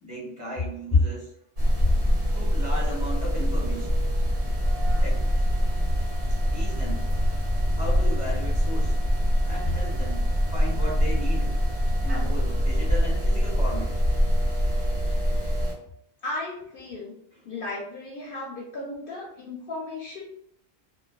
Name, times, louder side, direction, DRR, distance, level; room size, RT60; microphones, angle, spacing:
voice 1, 0.0-1.3 1.8-1.9 2.3-4.0 5.0-5.4 6.5-7.0 7.7-8.9 9.4-10.3 10.5-11.5 12.0-13.9 15.6-15.7, left 2 dB, 5° right, -5 dB, 1.2 m, -32 dB
sound 1, 1.6-15.7, equal, 75° right, 1.3 m, -24 dB
voice 2, 16.2-17.1 17.4-20.2, left 2 dB, 60° left, -3 dB, 0.7 m, -35 dB
3.1 x 2.2 x 2.4 m, 0.70 s
omnidirectional pair, 1.1 m